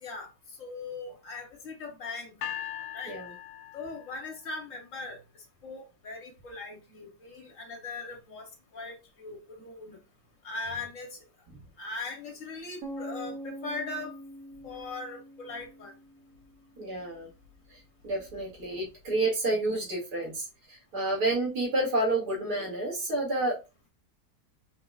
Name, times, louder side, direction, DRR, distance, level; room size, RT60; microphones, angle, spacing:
voice 1, 0.6-2.4 2.9-3.2 3.7-5.2 5.6-8.4 8.7-10.0 10.4-11.2 11.8-14.1 14.6-15.9, left 3 dB, 55° left, 1.7 m, -39 dB
sound 1, 2.4-4.5, left 10 dB, 90° left, 1.3 m, -40 dB
sound 2, 12.8-16.7, right 1 dB, 60° right, 1.4 m, -43 dB
voice 2, 16.8-17.3 17.7-23.6, right 2 dB, 80° right, 2.3 m, -30 dB
4.8 x 2.2 x 3.5 m
omnidirectional pair, 1.7 m